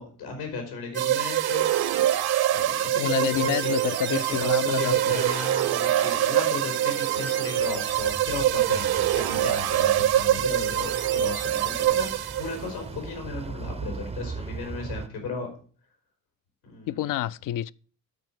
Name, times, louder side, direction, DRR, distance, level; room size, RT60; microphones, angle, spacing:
voice 1, 0.0-1.7 2.5-3.7 4.1-15.5 16.6-17.1, left 4 dB, 85° left, 4.0 m, -35 dB
sound 1, 0.9-12.7, right 12 dB, 50° right, 0.8 m, -24 dB
voice 2, 2.9-5.4 16.9-17.7, left 13 dB, 45° left, 0.4 m, -28 dB
Wind instrument woodwind instrument, 3.8-9.4, right 12 dB, 85° right, 0.9 m, -46 dB
sound 2, 7.6-15.1, right 4 dB, 15° right, 0.6 m, -39 dB
9.3 x 4.5 x 7.4 m
hypercardioid pair, 55°, 49 cm